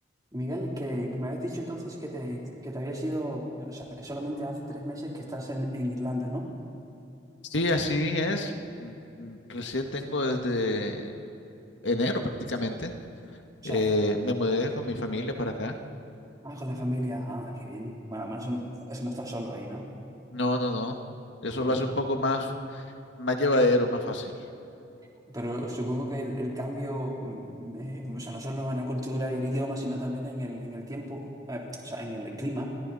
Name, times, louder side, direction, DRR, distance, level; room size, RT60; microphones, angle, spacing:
voice 1, 0.3-6.5 13.6-13.8 16.4-19.9 21.5-21.9 25.3-32.8, equal, 20° right, -2 dB, 3.6 m, -33 dB
voice 2, 7.5-8.5 8.8-11.1 11.8-12.2 12.5-12.9 13.6-15.7 20.3-21.0 21.4-22.8 23.2-24.3, left 1 dB, 80° left, 4 dB, 1.8 m, -27 dB
29.0 x 23.0 x 4.3 m, 2.8 s
head